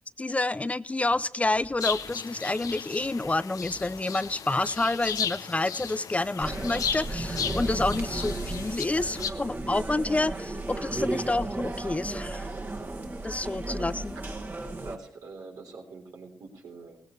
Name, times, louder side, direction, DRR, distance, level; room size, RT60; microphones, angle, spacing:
voice 1, 0.0-12.5 13.2-14.1, left 2 dB, 20° left, 16 dB, 0.5 m, -29 dB
sound 1, 1.1-14.0, right 3 dB, 50° right, 3.2 m, -55 dB
sound 2, 1.8-9.3, left 7 dB, 70° left, 0.8 m, -35 dB
sound 3, 6.4-15.0, right 2 dB, 30° right, 1.8 m, -34 dB
voice 2, 13.3-13.9 14.2-14.4 14.8-17.0, right 3 dB, 80° right, 1 dB, 3.6 m, -45 dB
16.5 x 16.0 x 3.2 m, 0.69 s
supercardioid pair, 55°, 6 cm